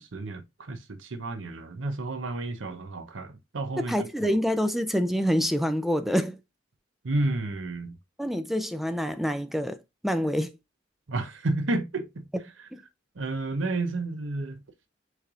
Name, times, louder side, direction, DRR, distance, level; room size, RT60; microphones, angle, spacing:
voice 1, 0.0-3.9 7.0-8.0 11.1-12.2 13.2-14.6, right 2 dB, 75° right, 0.8 m, -31 dB
voice 2, 3.8-6.4 8.2-10.5 12.7-12.8, equal, ahead, 0.3 m, -27 dB
6.4 x 3.3 x 2.4 m
head